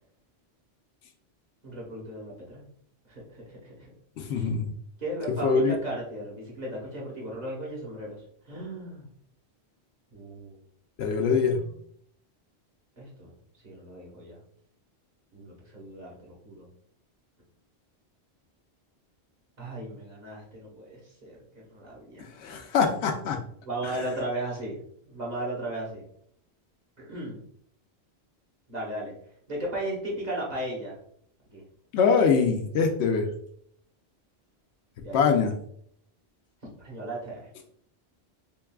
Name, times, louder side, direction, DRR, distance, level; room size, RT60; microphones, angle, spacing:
voice 1, 1.6-2.6 3.1-3.9 4.3-4.5 5.0-8.2 8.5-9.1 10.1-10.6 13.0-13.3 13.6-14.4 15.3-16.7 19.6-21.4 21.7-22.3 23.6-26.0 27.0-27.4 28.7-29.1 29.5-31.0 31.5-31.6 35.0-35.4 36.8-37.5, right 1 dB, 40° right, -4 dB, 1.3 m, -36 dB
voice 2, 4.2-4.7 5.3-5.8 11.0-11.6 22.2-23.4 23.8-23.9 31.9-33.3 35.1-35.5, left 5 dB, 90° left, 4 dB, 0.9 m, -23 dB
3.7 x 3.5 x 2.3 m, 0.65 s
omnidirectional pair, 1.1 m